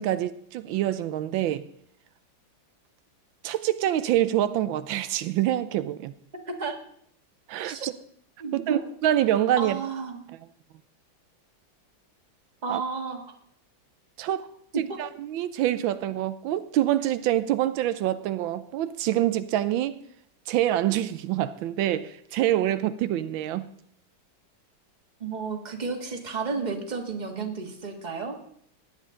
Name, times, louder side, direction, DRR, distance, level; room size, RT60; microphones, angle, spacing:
voice 1, 0.0-1.7 3.4-6.1 7.5-7.9 8.5-9.8 10.3-10.4 12.7-12.8 14.2-14.5 14.8-20.0 20.5-23.7, right 12 dB, 85° right, 1.4 m, -26 dB
voice 2, 6.3-6.7 7.6-7.9 8.4-8.8 9.6-10.2 12.6-13.2 14.7-15.0 25.2-28.4, right 4 dB, 25° right, 1.5 m, -32 dB
17.0 x 10.0 x 3.8 m
omnidirectional pair, 2.1 m